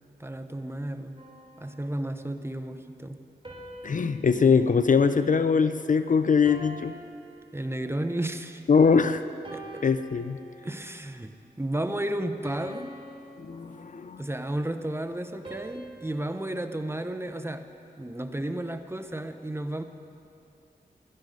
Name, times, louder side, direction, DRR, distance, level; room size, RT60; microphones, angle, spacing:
voice 1, 0.2-1.2 1.6-3.2 7.5-8.6 9.5-9.8 10.6-12.9 14.2-17.7 18.0-19.8, right 1 dB, 15° right, 8 dB, 0.9 m, -33 dB
sound 1, 1.2-2.5 3.4-6.0 6.4-8.2 8.7-9.0 9.4-11.0 11.5-11.7 12.4-14.3 15.4-17.8, right 1 dB, 30° right, 3.1 m, -47 dB
voice 2, 3.8-6.9 8.7-9.2 9.8-10.4 13.4-14.2, left 5 dB, 50° left, 11 dB, 0.5 m, -22 dB
17.0 x 11.5 x 5.3 m, 2.6 s
cardioid pair, 50°, 17 cm